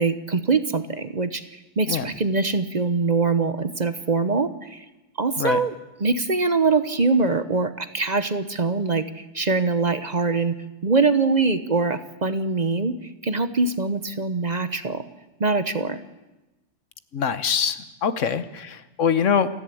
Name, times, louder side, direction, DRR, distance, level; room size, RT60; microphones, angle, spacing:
voice 1, 0.0-4.8 5.2-5.7 6.0-10.6 10.8-12.9 13.2-15.0 15.4-16.0, right 4 dB, 40° right, 11 dB, 0.9 m, -23 dB
voice 2, 17.1-19.5, left 7 dB, 80° left, 13 dB, 1.4 m, -23 dB
28.5 x 11.0 x 8.5 m, 1.0 s
omnidirectional pair, 1.3 m